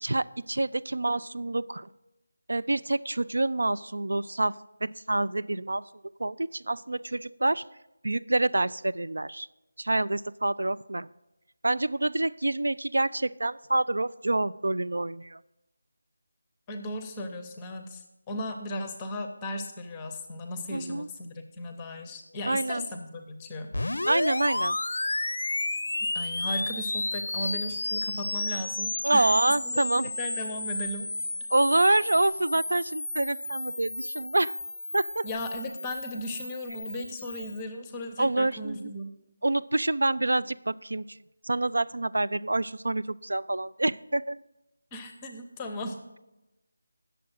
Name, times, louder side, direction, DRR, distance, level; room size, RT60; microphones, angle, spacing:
voice 1, 0.0-1.9 2.5-5.8 6.2-7.6 8.0-9.5 9.8-11.1 11.6-15.4 20.7-21.1 22.4-22.9 24.1-24.8 29.0-30.1 31.5-34.6 34.9-35.2 38.2-38.9 39.4-41.0 41.4-44.4, right 2 dB, 85° right, 15 dB, 0.3 m, -27 dB
voice 2, 16.7-23.7 26.0-31.1 31.9-32.0 35.2-39.1 44.9-46.0, left 1 dB, 10° left, 6 dB, 0.6 m, -36 dB
sound 1, 23.7-37.6, left 2 dB, 70° left, 0.5 m, -32 dB
8.6 x 6.7 x 6.4 m, 0.95 s
figure-of-eight pair, 175°, 0 cm